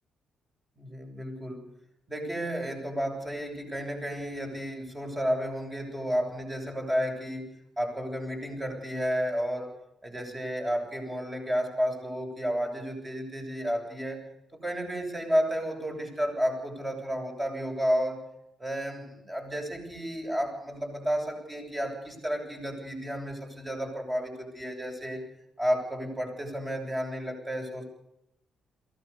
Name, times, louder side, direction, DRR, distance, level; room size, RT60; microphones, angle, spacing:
voice 1, 0.8-1.6 2.1-7.5 7.8-9.7 10.0-14.2 14.5-18.2 18.6-25.2 25.6-27.8, equal, 20° right, 2 dB, 7.7 m, -31 dB
22.5 x 17.0 x 7.1 m, 0.82 s
cardioid pair, 90°, 0 cm